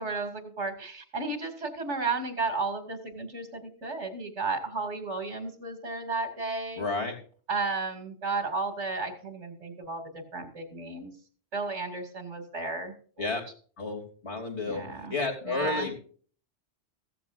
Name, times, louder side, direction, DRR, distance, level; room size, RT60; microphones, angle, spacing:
voice 1, 0.0-6.8 7.5-11.1 11.5-13.3 14.6-15.1 15.4-15.9, right 3 dB, 85° right, 6 dB, 2.8 m, -33 dB
voice 2, 6.8-7.1 13.2-13.4 13.8-14.8 15.1-15.9, left 3 dB, 70° left, 2 dB, 3.4 m, -31 dB
15.5 x 14.5 x 2.6 m, 0.44 s
omnidirectional pair, 1.2 m